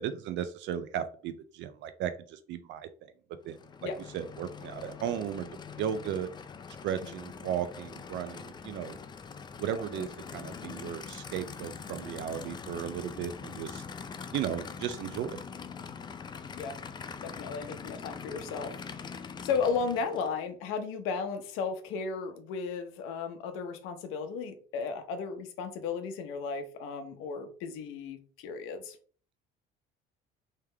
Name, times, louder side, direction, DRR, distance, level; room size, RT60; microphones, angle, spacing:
voice 1, 0.0-3.1 3.4-3.6 3.8-5.5 5.8-6.3 6.8-9.0 9.6-13.8 14.3-15.4, right 9 dB, 65° right, 11 dB, 0.4 m, -35 dB
Aircraft / Idling, 3.4-20.4, left 6 dB, 20° left, 0.4 m, -43 dB
voice 2, 9.7-10.1 16.5-16.8 17.2-29.0, left 5 dB, 80° left, 7 dB, 0.9 m, -35 dB
3.5 x 3.2 x 3.3 m, 0.43 s
cardioid pair, 130°, 21 cm